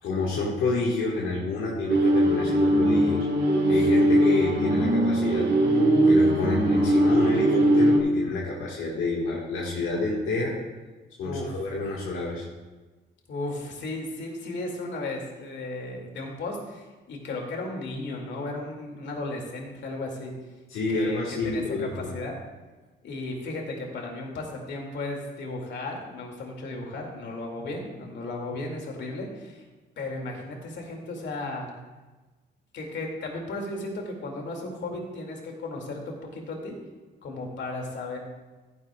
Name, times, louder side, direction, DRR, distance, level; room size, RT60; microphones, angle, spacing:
voice 1, 0.0-3.3 3.7-10.6 11.2-12.5 20.7-22.1, left 3 dB, 80° left, -4 dB, 1.8 m, -29 dB
sound 1, 1.9-8.0, right 1 dB, 55° right, 2.0 m, -20 dB
voice 2, 11.2-11.7 13.3-20.3 20.9-21.6 22.0-22.3 23.0-29.6 30.0-31.7 32.7-36.7 37.2-38.2, left 2 dB, 65° left, 1 dB, 2.5 m, -35 dB
15.0 x 10.0 x 2.4 m, 1.2 s
cardioid pair, 90°, 20 cm